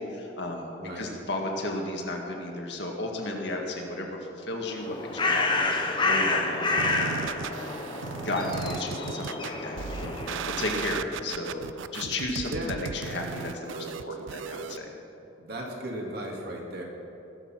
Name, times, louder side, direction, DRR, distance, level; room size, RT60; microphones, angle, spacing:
voice 1, 0.0-7.9 8.2-11.6 11.9-14.9, left 2 dB, 60° left, 1 dB, 1.8 m, -34 dB
Bird, 4.6-10.7, left 3 dB, 25° left, 1.0 m, -29 dB
sound 1, 6.8-14.8, right 6 dB, 80° right, 0.4 m, -36 dB
voice 2, 15.4-16.8, right 1 dB, 55° right, -1 dB, 2.3 m, -36 dB
20.0 x 6.8 x 5.9 m, 2.8 s
head